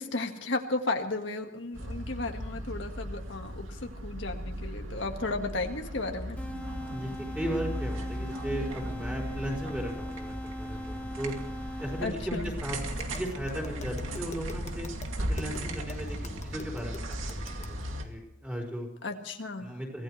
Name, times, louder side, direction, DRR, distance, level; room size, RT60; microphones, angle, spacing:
voice 1, 0.0-6.4 12.0-12.5 19.0-19.7, left 2 dB, 70° left, 4 dB, 1.7 m, -34 dB
sound 1, 1.7-18.0, equal, 90° right, 2.5 m, -37 dB
sound 2, 6.4-12.4, equal, 10° left, 1.3 m, -40 dB
voice 2, 6.9-11.3 11.8-12.8 13.1-14.9 15.3-16.2 16.4-18.9 19.6-20.0, equal, 5° right, -1 dB, 4.7 m, -36 dB
Tap, 12.9-17.8, left 2 dB, 35° left, 1.3 m, -46 dB
24.5 x 17.0 x 3.3 m, 0.87 s
head